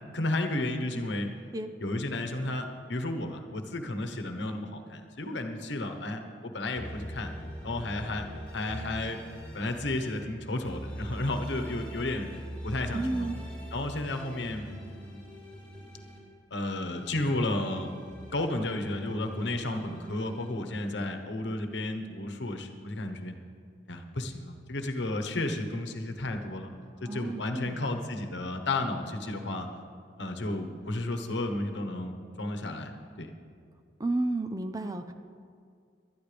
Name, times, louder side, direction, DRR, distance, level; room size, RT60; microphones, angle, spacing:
voice 1, 0.1-1.3 1.8-7.3 7.6-8.2 8.5-9.2 9.5-12.3 12.6-13.3 13.7-14.7 15.0-15.2 16.5-17.9 18.3-23.3 23.9-26.7 27.0-29.7 30.2-32.9 33.2-33.3, left 2 dB, 80° left, 5 dB, 1.1 m, -32 dB
sound 1, 6.8-10.2 10.6-16.2 16.6-20.5, equal, 10° left, 3.2 m, -42 dB
voice 2, 12.9-13.4 27.0-27.8 34.0-35.1, right 2 dB, 20° right, 8 dB, 0.5 m, -32 dB
19.0 x 12.5 x 3.4 m, 2.2 s
head